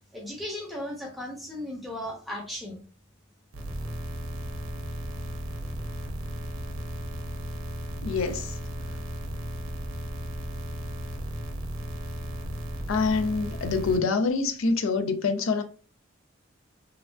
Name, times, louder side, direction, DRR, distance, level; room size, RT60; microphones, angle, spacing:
voice 1, 0.1-2.8, left 1 dB, ahead, 0.7 m, -36 dB
sound 1, 3.5-14.0, equal, 85° right, 0.6 m, -35 dB
voice 2, 8.0-8.6 8.9-9.0 12.9-15.6, left 4 dB, 85° left, 0.4 m, -26 dB
3.3 x 2.4 x 2.2 m
head